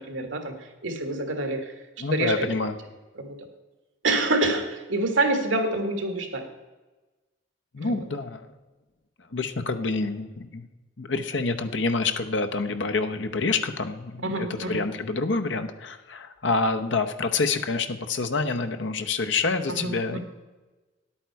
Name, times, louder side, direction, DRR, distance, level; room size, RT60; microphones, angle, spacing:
voice 1, 0.0-1.7 2.1-2.5 3.2-3.4 4.0-6.5 7.8-8.1 14.2-14.8 19.7-20.2, right 2 dB, 90° right, 6 dB, 1.6 m, -27 dB
voice 2, 2.0-2.7 7.7-8.4 9.3-10.6 11.0-20.2, left 3 dB, 70° left, 7 dB, 0.8 m, -27 dB
10.5 x 8.7 x 4.6 m, 1.2 s
head